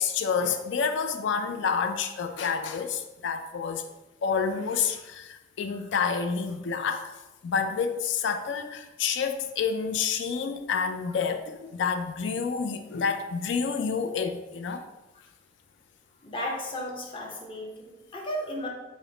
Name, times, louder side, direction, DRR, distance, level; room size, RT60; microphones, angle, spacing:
voice 1, 0.0-3.8 4.2-7.1 7.4-14.8, left 6 dB, 60° left, 7 dB, 0.3 m, -29 dB
voice 2, 16.2-18.7, equal, 25° left, -1 dB, 0.7 m, -34 dB
4.8 x 2.1 x 3.8 m, 1.0 s
head